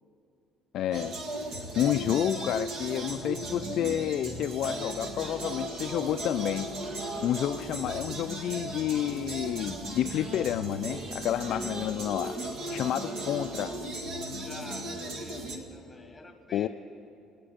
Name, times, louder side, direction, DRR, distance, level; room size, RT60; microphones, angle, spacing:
voice 1, 0.7-1.2 1.8-6.7 7.2-12.3 12.7-13.8 16.5-16.7, left 11 dB, 55° left, 9 dB, 0.3 m, -30 dB
sound 1, 0.9-15.6, right 1 dB, 60° right, 1.7 m, -36 dB
voice 2, 14.4-16.7, left 2 dB, 10° left, 5 dB, 1.5 m, -47 dB
28.0 x 9.9 x 5.1 m, 2.7 s
cardioid pair, 150°, 0 cm